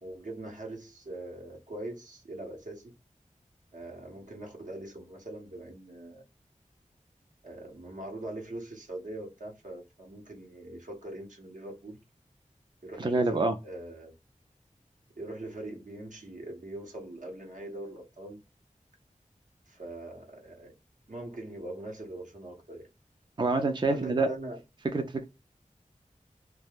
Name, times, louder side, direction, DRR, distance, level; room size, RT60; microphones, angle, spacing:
voice 1, 0.0-2.9 3.7-6.2 7.4-12.0 12.8-14.1 15.2-18.4 19.7-20.7 21.1-22.9 23.9-24.6, right 1 dB, 70° right, 0.9 m, -42 dB
voice 2, 13.0-13.5 23.4-24.3 24.9-25.2, right 3 dB, 35° right, 0.4 m, -26 dB
2.3 x 2.2 x 3.3 m
wide cardioid pair, 65°, 14 cm